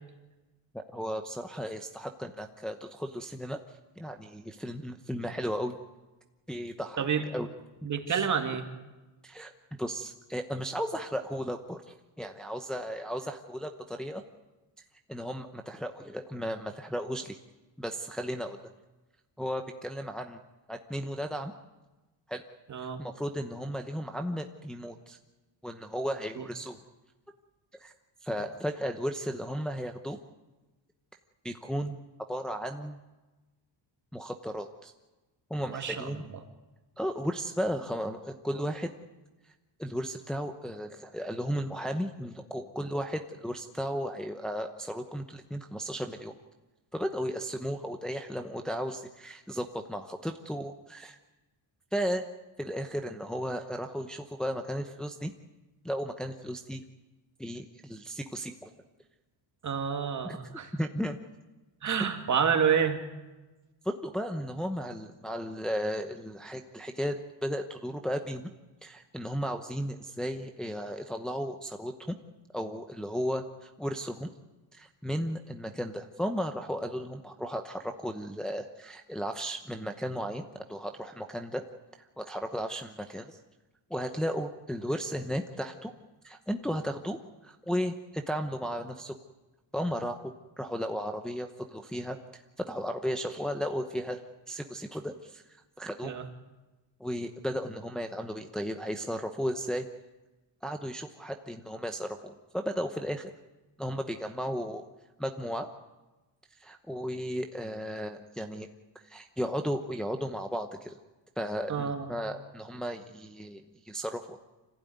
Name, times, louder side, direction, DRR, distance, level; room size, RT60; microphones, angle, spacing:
voice 1, 0.7-3.6 4.0-5.8 6.5-7.5 7.8-8.2 9.2-9.5 9.8-14.2 15.1-17.4 17.8-18.6 19.4-20.4 20.7-21.5 22.3-22.4 23.0-25.2 25.6-26.8 27.8-27.9 28.2-30.2 31.4-32.0 32.3-33.0 34.1-34.9 35.5-36.3 37.0-38.9 39.8-46.3 46.9-51.2 51.9-52.3 52.6-55.3 55.8-56.8 57.4-58.7 60.2-60.4 60.7-61.2 61.8-62.0 63.8-68.5 68.8-72.1 72.5-74.3 74.7-81.6 82.0-83.4 83.9-85.9 86.2-89.1 89.7-94.2 94.5-96.1 97.0-99.9 100.6-103.3 103.8-104.8 105.2-105.7 106.5-108.7 108.9-111.0 111.4-114.4, equal, ahead, 3 dB, 0.9 m, -35 dB
voice 2, 7.8-8.6 22.7-23.0 26.4-26.5 35.7-36.1 59.6-60.7 61.8-63.0 96.0-96.2 111.7-112.1, right 7 dB, 40° right, 5 dB, 2.5 m, -28 dB
26.0 x 16.0 x 9.5 m, 1.1 s
cardioid pair, 150°, 47 cm